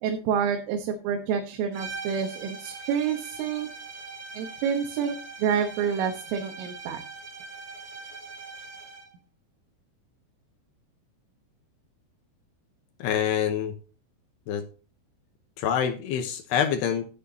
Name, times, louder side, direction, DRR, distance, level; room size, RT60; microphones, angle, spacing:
voice 1, 0.0-3.7 4.3-7.0, right 7 dB, 85° right, 4 dB, 3.8 m, -28 dB
sound 1, 1.7-9.1, right 4 dB, 25° right, 2.5 m, -42 dB
voice 2, 13.0-13.7 14.5-14.6 15.6-17.1, left 8 dB, 75° left, 7 dB, 2.7 m, -26 dB
11.0 x 10.5 x 2.8 m, 0.36 s
omnidirectional pair, 5.6 m